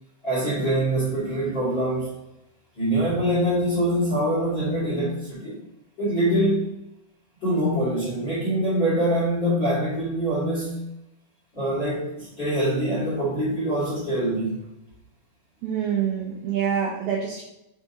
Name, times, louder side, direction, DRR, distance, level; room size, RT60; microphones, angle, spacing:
voice 1, 0.2-2.1 2.8-5.6 6.0-6.7 7.4-10.8 11.5-14.6, right 1 dB, 45° left, -8 dB, 1.5 m, -24 dB
voice 2, 15.6-17.4, right 8 dB, 90° right, -3 dB, 2.3 m, -26 dB
8.5 x 3.9 x 2.8 m, 0.88 s
omnidirectional pair, 5.9 m